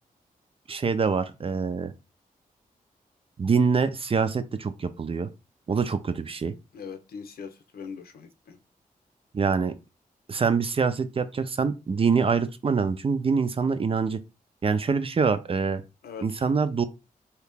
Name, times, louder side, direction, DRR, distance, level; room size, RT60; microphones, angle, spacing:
voice 1, 0.7-1.9 3.4-5.3 5.7-6.5 9.3-9.7 10.3-14.2 14.6-15.8 16.2-16.9, right 5 dB, 40° right, 0.5 m, -25 dB
voice 2, 6.7-8.6 16.0-16.5, left 6 dB, 85° left, 0.7 m, -41 dB
2.9 x 2.8 x 3.5 m
cardioid pair, 70°, 15 cm